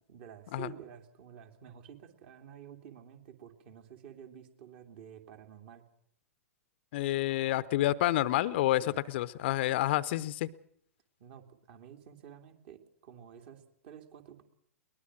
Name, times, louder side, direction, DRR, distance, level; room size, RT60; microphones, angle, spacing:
voice 1, 0.1-5.8 8.8-9.0 11.2-14.4, right 9 dB, 45° right, 6 dB, 2.9 m, -50 dB
voice 2, 6.9-10.5, left 15 dB, 45° left, 18 dB, 0.8 m, -29 dB
22.0 x 19.5 x 6.2 m, 0.69 s
figure-of-eight pair, 105°, 8 cm